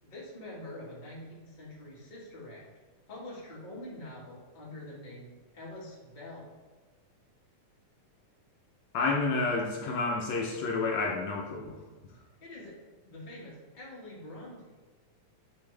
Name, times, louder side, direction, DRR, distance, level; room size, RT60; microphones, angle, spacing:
voice 1, 0.0-2.7 3.1-6.5 12.4-14.6, left 1 dB, 20° left, -6 dB, 1.3 m, -45 dB
voice 2, 8.9-11.8, left 3 dB, 70° left, -1 dB, 2.0 m, -30 dB
10.5 x 3.5 x 3.3 m, 1.3 s
omnidirectional pair, 3.4 m